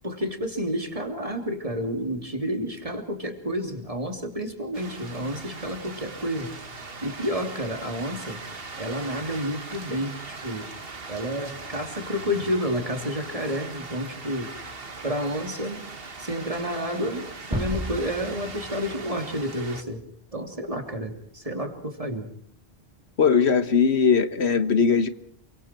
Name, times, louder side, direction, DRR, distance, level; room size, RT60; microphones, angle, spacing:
voice 1, 0.0-6.5 7.0-8.4 8.8-10.7 11.1-14.5 15.0-15.8 16.2-20.0 20.3-22.3, equal, 35° right, 3.3 m, -30 dB
sound 1, 4.7-19.8, right 3 dB, 60° right, 2.0 m, -40 dB
sound 2, 17.5-20.4, equal, 5° right, 2.4 m, -35 dB
voice 2, 23.2-25.1, left 6 dB, 85° left, 1.6 m, -20 dB
28.5 x 24.5 x 4.5 m
omnidirectional pair, 1.1 m